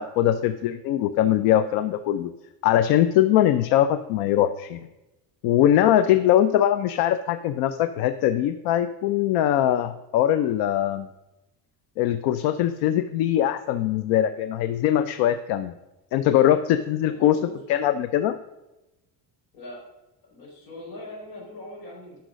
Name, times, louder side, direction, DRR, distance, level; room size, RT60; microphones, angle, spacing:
voice 1, 0.0-2.3 2.6-4.9 5.4-11.1 12.0-15.7 16.1-17.4 17.7-18.4, left 11 dB, 90° left, 12 dB, 0.6 m, -21 dB
voice 2, 17.0-17.5 19.5-19.8 20.2-22.2, left 2 dB, 70° left, -2 dB, 4.2 m, -41 dB
10.0 x 5.9 x 6.3 m, 1.0 s
cardioid pair, 155°, 37 cm